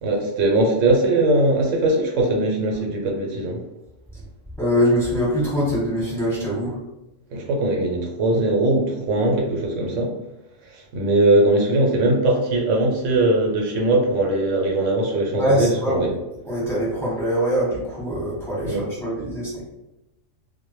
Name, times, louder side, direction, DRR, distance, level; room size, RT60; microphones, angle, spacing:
voice 1, 0.0-3.6 7.3-10.1 10.6-16.1 18.6-18.9, right 2 dB, 85° right, 0 dB, 1.0 m, -20 dB
voice 2, 4.6-6.8 15.4-16.1 16.4-19.6, equal, ahead, -8 dB, 1.0 m, -23 dB
2.1 x 2.1 x 2.9 m, 0.94 s
omnidirectional pair, 1.3 m